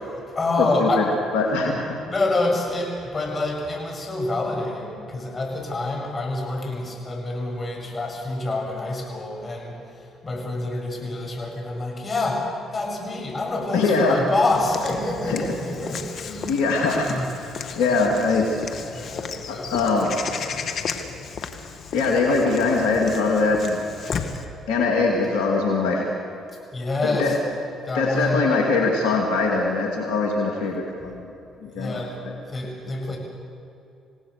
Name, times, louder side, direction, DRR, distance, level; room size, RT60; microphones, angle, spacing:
voice 1, 0.0-1.1 2.1-17.3 18.9-20.6 26.7-27.4 27.9-28.4 31.6-32.2 32.5-33.2, left 2 dB, 35° left, 0 dB, 7.1 m, -27 dB
voice 2, 0.6-1.0 1.3-2.0 13.7-14.2 15.3-15.4 16.5-18.6 19.5-20.1 21.9-23.9 24.7-26.1 27.0-27.3 27.9-31.3 31.6-32.3, left 3 dB, 80° left, 0 dB, 2.6 m, -22 dB
Walk footsteps / Bird vocalization bird call bird song, 14.5-24.4, left 6 dB, 60° left, 1.8 m, -34 dB
28.0 x 17.5 x 6.7 m, 2.8 s
hypercardioid pair, 55°, 0 cm